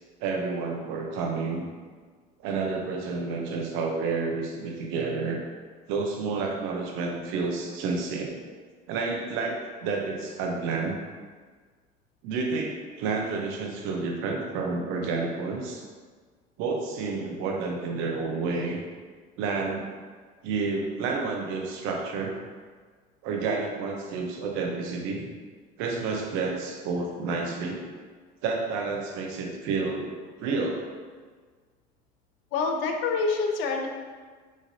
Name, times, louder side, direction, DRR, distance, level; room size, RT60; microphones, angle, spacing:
voice 1, 0.2-1.7 2.4-5.4 5.9-8.4 8.9-11.0 12.2-15.8 16.6-18.8 19.4-19.9 20.4-22.4 23.2-25.3 25.8-27.8 28.4-30.1 30.4-30.8, right 4 dB, 80° right, 1 dB, 0.8 m, -30 dB
voice 2, 32.5-33.9, left 4 dB, 70° left, 3 dB, 0.7 m, -26 dB
6.3 x 2.6 x 2.7 m, 1.5 s
supercardioid pair, 100°, 21 cm